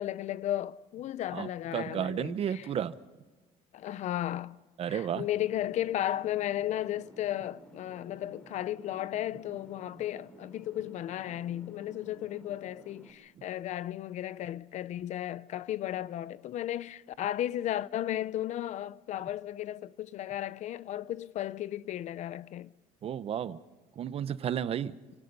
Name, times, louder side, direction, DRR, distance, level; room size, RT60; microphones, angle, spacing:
voice 1, 0.0-2.7 3.7-4.6 4.9-22.7, left 12 dB, 50° left, 0.6 m, -34 dB
voice 2, 1.3-2.9 4.8-5.2 23.0-23.6 24.0-25.0, right 9 dB, 40° right, 0.8 m, -32 dB
sound 1, 5.1-13.1, right 1 dB, 5° left, 3.4 m, -54 dB
29.5 x 18.0 x 5.4 m
cardioid pair, 160°, 15 cm